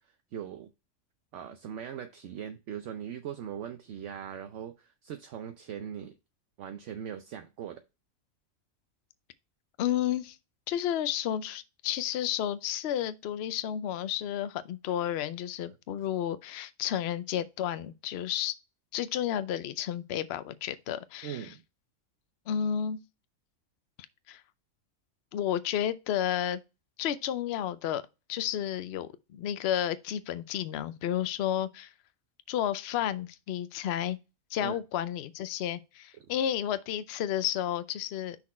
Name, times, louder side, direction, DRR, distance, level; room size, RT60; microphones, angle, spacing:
voice 1, 0.3-0.7 1.3-6.2 6.6-7.8 21.2-21.6 34.6-34.8 36.2-36.3, right 9 dB, 65° right, 0.9 m, -40 dB
voice 2, 9.8-10.4 10.7-18.6 18.9-21.5 22.5-23.0 24.3-24.4 25.3-26.6 27.0-28.0 28.3-31.9 32.5-34.2 34.5-38.4, left 10 dB, 60° left, 0.7 m, -31 dB
6.1 x 4.4 x 4.2 m
omnidirectional pair, 1.4 m